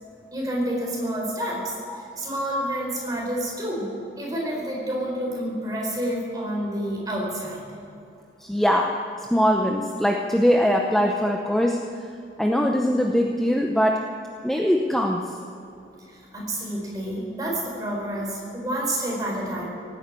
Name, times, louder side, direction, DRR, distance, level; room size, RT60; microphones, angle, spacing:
voice 1, 0.3-1.6 2.2-3.9 4.2-7.6 16.1-19.6, right 1 dB, 20° right, -2 dB, 4.3 m, -29 dB
voice 2, 8.4-9.0 9.3-11.8 12.4-14.1 14.4-15.3, equal, ahead, 1 dB, 0.7 m, -22 dB
17.5 x 9.8 x 8.3 m, 2.6 s
head